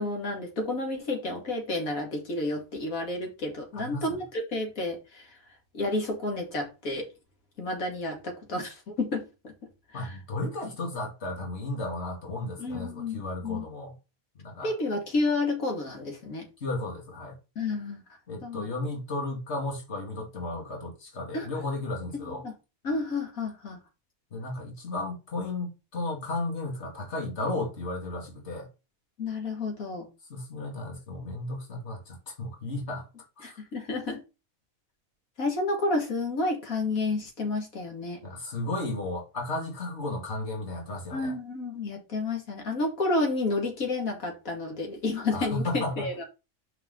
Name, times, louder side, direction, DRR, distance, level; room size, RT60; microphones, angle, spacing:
voice 1, 0.0-5.4 5.7-7.1 7.6-9.3 9.9-10.1 12.6-13.6 14.6-16.5 17.6-18.0 18.4-18.7 21.3-21.5 22.4-22.5 22.8-23.8 29.2-30.1 33.4-34.2 35.4-38.2 41.1-46.3, left 2 dB, 90° left, 2.5 m, -30 dB
voice 2, 3.7-4.2 9.9-14.0 14.4-14.7 16.6-17.4 18.3-22.4 24.3-28.7 30.3-33.1 33.4-33.6 38.2-41.4 45.3-46.1, left 2 dB, 55° left, 2.4 m, -34 dB
6.0 x 4.7 x 5.2 m
omnidirectional pair, 1.4 m